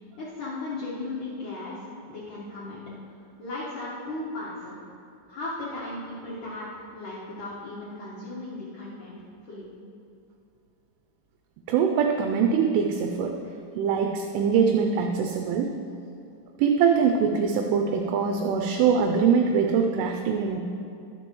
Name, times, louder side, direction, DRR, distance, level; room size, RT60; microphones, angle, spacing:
voice 1, 0.2-2.8 3.1-4.8 5.3-9.2 9.4-9.7, left 2 dB, 75° left, -9 dB, 1.9 m, -36 dB
voice 2, 11.7-13.3 13.8-15.7 16.6-20.6, right 6 dB, 80° right, 3 dB, 2.9 m, -23 dB
20.0 x 6.9 x 3.1 m, 2.6 s
omnidirectional pair, 5.9 m